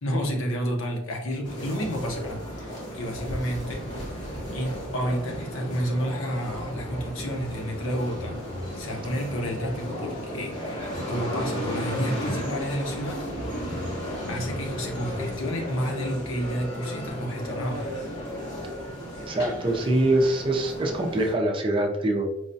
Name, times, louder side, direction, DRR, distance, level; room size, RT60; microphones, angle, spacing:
voice 1, 0.0-3.9 4.5-8.4 8.7-13.3 14.3-17.9, equal, 85° left, 1 dB, 0.8 m, -30 dB
sound 1, 1.4-21.3, equal, 60° left, 1.2 m, -34 dB
voice 2, 19.3-22.3, right 1 dB, 25° right, 1 dB, 0.5 m, -24 dB
4.6 x 2.2 x 2.6 m, 0.88 s
head